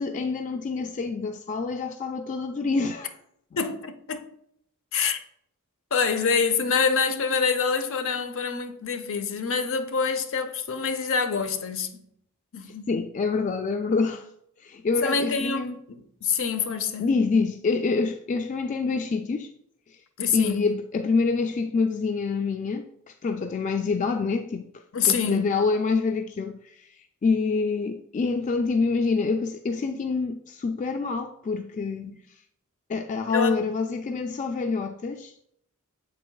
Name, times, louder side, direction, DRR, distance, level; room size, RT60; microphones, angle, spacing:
voice 1, 0.0-3.1 12.6-14.3 14.6-15.8 17.0-19.5 19.9-20.0 20.3-24.7 25.1-32.1 32.9-35.5, left 4 dB, 35° left, 0.3 m, -26 dB
voice 2, 3.6-4.2 4.9-5.2 5.9-11.9 12.5-12.9 15.0-17.1 20.2-20.7 24.9-25.5 32.0-32.1 33.3-33.6, left 5 dB, 60° left, 0.7 m, -26 dB
7.6 x 7.2 x 2.3 m
head